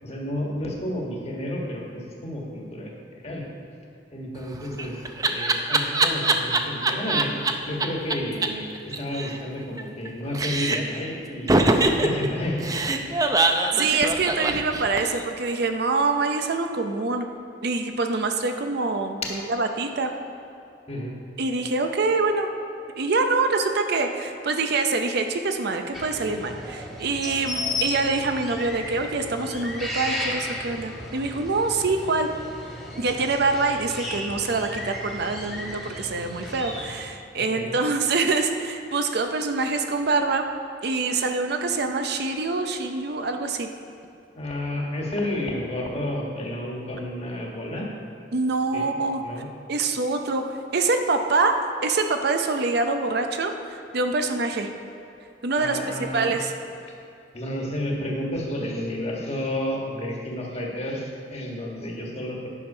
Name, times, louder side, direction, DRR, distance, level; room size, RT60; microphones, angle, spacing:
voice 1, 0.0-2.9 3.2-3.4 4.1-5.0 5.2-7.3 7.6-8.7 9.0-12.7 13.7-13.8 20.9-21.1 37.5-37.7 44.3-47.9 48.7-49.5 55.6-56.3 57.3-62.5, left 1 dB, 35° left, -1 dB, 1.5 m, -31 dB
Laughter, 4.4-7.5 7.8-8.1 8.4-8.5 8.8-10.1 10.3-11.0 11.5-15.2, right 2 dB, 20° right, 0.5 m, -23 dB
voice 2, 13.8-17.3 17.6-20.1 21.4-22.5 23.0-32.3 33.0-40.5 40.8-43.7 48.3-49.2 49.7-50.5 50.7-54.7 55.4-56.5, right 3 dB, 60° right, 6 dB, 0.6 m, -25 dB
sound 1, 25.9-37.0, left 1 dB, ahead, 1.4 m, -34 dB
10.0 x 6.1 x 5.5 m, 2.7 s
head